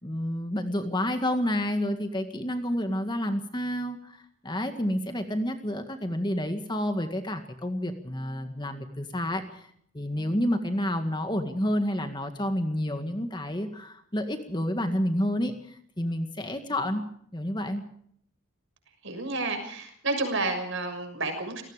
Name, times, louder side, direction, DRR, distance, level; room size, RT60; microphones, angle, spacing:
voice 1, 0.0-9.7 9.9-17.0 17.3-17.8, equal, 20° left, 7 dB, 1.9 m, -29 dB
voice 2, 19.0-21.6, right 2 dB, 55° right, 6 dB, 6.6 m, -30 dB
28.0 x 19.0 x 5.1 m, 0.66 s
head